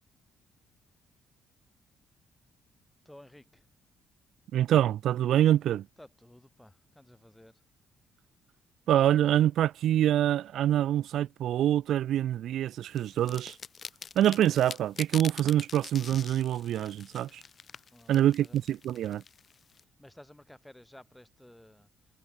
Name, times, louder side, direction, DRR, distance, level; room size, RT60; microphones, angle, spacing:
voice 1, 3.1-3.7 6.0-7.6 17.9-18.6 19.8-21.9, left 1 dB, 5° left, 3.6 m, -54 dB
voice 2, 4.5-5.9 8.9-13.6 14.2-17.4 18.1-19.2, right 11 dB, 70° right, 0.6 m, -25 dB
sound 1, 13.0-19.8, left 6 dB, 45° left, 0.7 m, -45 dB
cardioid pair, 80°, 0 cm